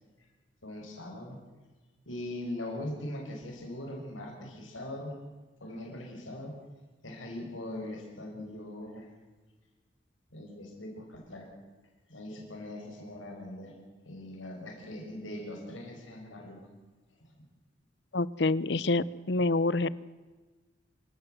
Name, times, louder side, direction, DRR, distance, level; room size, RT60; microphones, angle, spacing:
voice 1, 0.6-1.4 2.1-5.1 5.6-6.5 7.0-9.1 10.3-11.5 12.1-13.7 14.1-16.6 17.2-17.3, left 1 dB, 85° left, 0 dB, 6.1 m, -41 dB
voice 2, 18.1-19.9, left 2 dB, 60° left, 20 dB, 0.7 m, -27 dB
26.5 x 16.0 x 8.0 m, 1.3 s
head